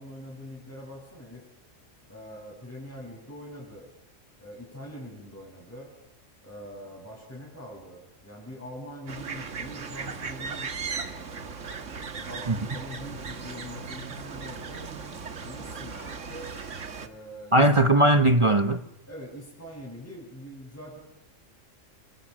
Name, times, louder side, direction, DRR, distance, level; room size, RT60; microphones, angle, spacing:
voice 1, 0.0-1.4 2.1-3.9 4.4-5.9 6.4-11.4 12.2-16.5 17.0-18.1 19.1-21.0, equal, 10° left, 6.0 m, -43 dB
sound 1, 9.1-17.1, right 5 dB, 70° right, 1.9 m, -37 dB
voice 2, 17.5-18.8, right 1 dB, 25° right, 1.0 m, -19 dB
30.0 x 22.5 x 7.7 m
omnidirectional pair, 1.3 m